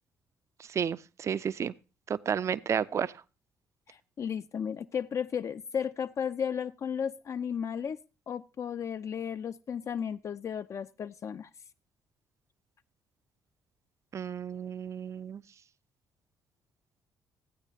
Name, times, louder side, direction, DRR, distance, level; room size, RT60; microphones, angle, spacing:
voice 1, 0.7-1.7 2.1-3.1 14.1-15.4, right 7 dB, 40° right, 0.5 m, -32 dB
voice 2, 3.9-8.0 8.3-11.5, left 7 dB, 40° left, 0.4 m, -34 dB
13.5 x 9.6 x 2.7 m
figure-of-eight pair, 45°, 8 cm